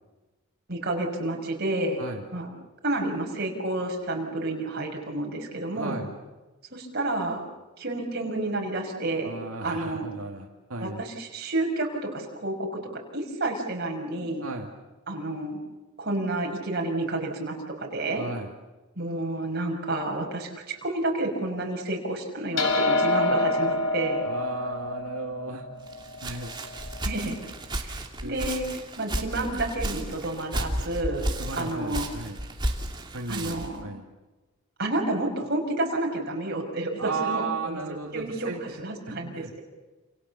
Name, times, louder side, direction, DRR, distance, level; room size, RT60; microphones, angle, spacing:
voice 1, 0.7-2.0 2.3-2.5 2.8-6.0 6.7-7.5 7.8-9.3 9.6-10.1 10.8-14.4 15.1-15.6 16.0-18.2 19.0-24.2 27.0-27.4 27.8-28.0 28.2-28.7 29.0-31.2 31.5-32.1 33.3-33.9 34.8-37.8 38.1-39.6, right 2 dB, 50° right, 1 dB, 5.8 m, -30 dB
voice 2, 5.7-6.1 9.2-11.0 14.4-14.7 18.1-18.5 24.2-25.7 26.2-26.5 28.2-28.4 31.4-32.4 33.1-34.0 37.0-38.8 39.1-39.5, right 3 dB, 85° right, 1 dB, 2.4 m, -35 dB
sound 1, 22.6-27.2, left 2 dB, 65° left, 4.5 m, -27 dB
Walk footsteps, 25.9-33.8, right 1 dB, 20° right, 2.8 m, -33 dB
29.0 x 28.5 x 7.1 m, 1.1 s
head